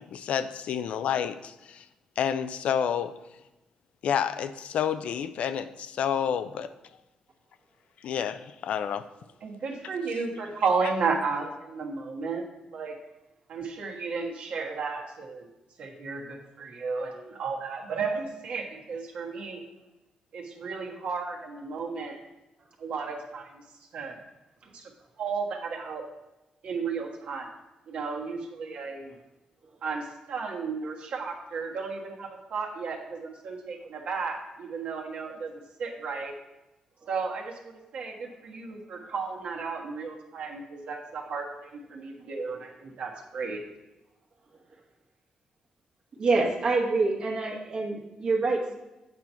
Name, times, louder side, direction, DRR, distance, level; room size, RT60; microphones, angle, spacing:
voice 1, 0.0-1.9 2.2-3.2 4.0-6.7 8.0-9.1, left 8 dB, 70° left, 12 dB, 0.4 m, -29 dB
voice 2, 9.4-12.4 12.7-12.9 13.5-15.5 15.8-19.6 20.3-22.2 22.8-23.6 23.9-24.2 24.6-24.8 25.2-26.0 26.6-27.5 27.9-29.1 29.8-36.3 37.1-43.6, right 4 dB, 65° right, 0 dB, 1.5 m, -33 dB
voice 3, 46.2-48.8, right 3 dB, 45° right, -1 dB, 1.5 m, -26 dB
8.4 x 4.5 x 5.6 m, 1.0 s
cardioid pair, 150°, 2 cm